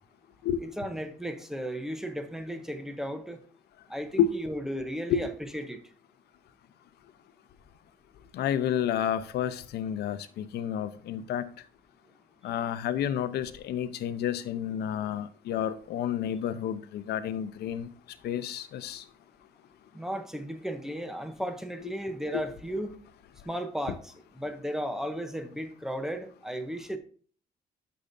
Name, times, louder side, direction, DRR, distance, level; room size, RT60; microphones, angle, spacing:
voice 1, 0.6-3.4 3.9-5.8 19.9-23.0 23.4-27.0, equal, 5° right, 0.7 m, -35 dB
voice 2, 8.3-11.5 12.4-17.9 18.2-19.0 22.3-22.4, left 9 dB, 90° left, 0.7 m, -30 dB
10.0 x 6.8 x 2.6 m
cardioid pair, 180°, 16 cm